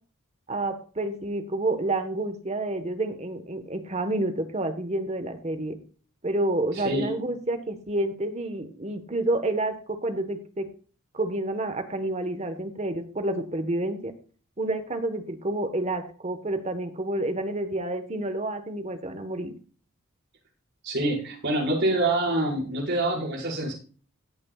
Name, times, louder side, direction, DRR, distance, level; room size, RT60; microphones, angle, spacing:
voice 1, 0.5-5.8 6.2-10.6 11.1-14.1 14.6-19.5, right 2 dB, 30° right, 7 dB, 1.3 m, -29 dB
voice 2, 6.8-7.2 20.8-23.7, right 1 dB, 55° right, -2 dB, 5.4 m, -26 dB
17.0 x 8.6 x 2.4 m, 0.40 s
head